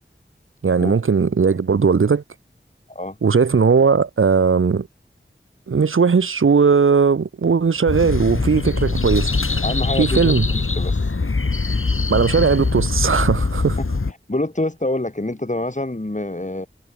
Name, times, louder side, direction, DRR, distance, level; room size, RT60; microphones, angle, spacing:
voice 1, 0.6-2.2 3.2-4.9 5.7-9.3 10.0-10.5 12.1-13.8, right 5 dB, 90° right, 0.8 m, -17 dB
sound 1, 7.9-14.1, left 3 dB, 90° left, 4.4 m, -22 dB
voice 2, 9.6-11.1 14.1-16.7, left 1 dB, 35° left, 6.4 m, -26 dB
wide cardioid pair, 45°, 21 cm